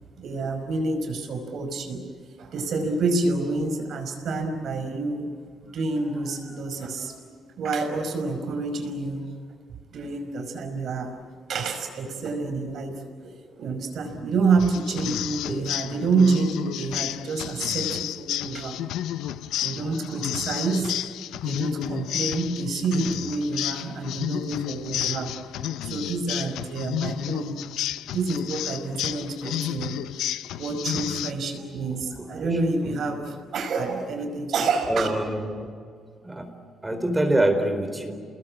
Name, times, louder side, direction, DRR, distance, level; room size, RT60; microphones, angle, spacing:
voice 1, 0.2-2.0 2.4-5.3 5.6-7.1 7.6-9.3 9.9-11.1 11.5-18.8 19.6-21.0 21.4-25.3 25.8-27.6 28.1-30.0 30.6-35.1, right 3 dB, 65° right, 6 dB, 5.4 m, -28 dB
sound 1, 14.6-31.3, left 12 dB, 85° left, 0.7 m, -31 dB
voice 2, 15.4-16.1 19.9-20.0 20.6-20.7 31.9-32.6 32.8-32.9 34.9-35.7 36.2-36.5 36.8-38.2, right 1 dB, 15° right, 7 dB, 4.3 m, -27 dB
29.0 x 21.0 x 8.7 m, 2.1 s
cardioid pair, 90°, 0 cm